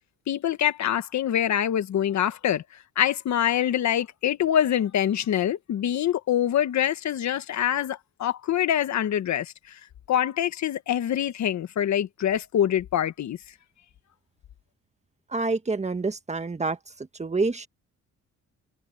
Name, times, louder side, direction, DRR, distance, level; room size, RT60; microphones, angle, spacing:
voice 1, 0.3-9.8 10.1-13.4, left 10 dB, 65° left, 1.5 m, -25 dB
voice 2, 15.3-16.8 17.2-17.7, right 3 dB, 20° right, 1.7 m, -27 dB
cardioid pair, 90°, 30 cm